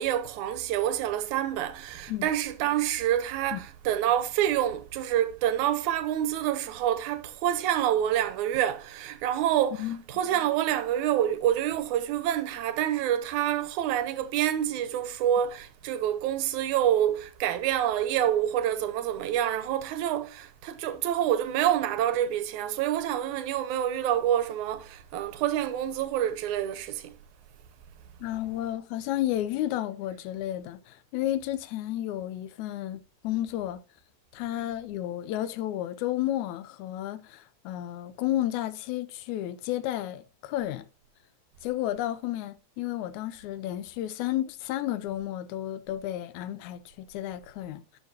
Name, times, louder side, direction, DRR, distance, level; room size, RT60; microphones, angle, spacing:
voice 1, 0.0-27.1, right 11 dB, 90° right, 2.2 m, -27 dB
voice 2, 28.2-33.8 34.3-40.9 41.6-48.0, left 13 dB, 85° left, 2.0 m, -32 dB
11.0 x 6.7 x 2.8 m
omnidirectional pair, 3.3 m